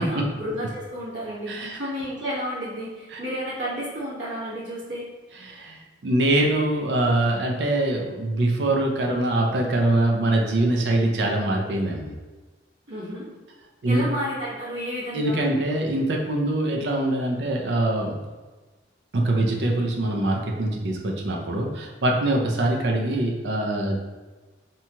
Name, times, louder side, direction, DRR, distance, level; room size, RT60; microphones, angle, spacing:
voice 1, 0.0-5.0 12.9-13.3 13.8-15.4, equal, 85° right, -9 dB, 1.1 m, -31 dB
voice 2, 1.5-1.8 3.1-3.2 5.4-12.1 13.8-14.0 15.1-18.1 19.1-24.0, right 1 dB, 70° right, 0 dB, 0.5 m, -23 dB
2.8 x 2.3 x 2.8 m, 1.2 s
head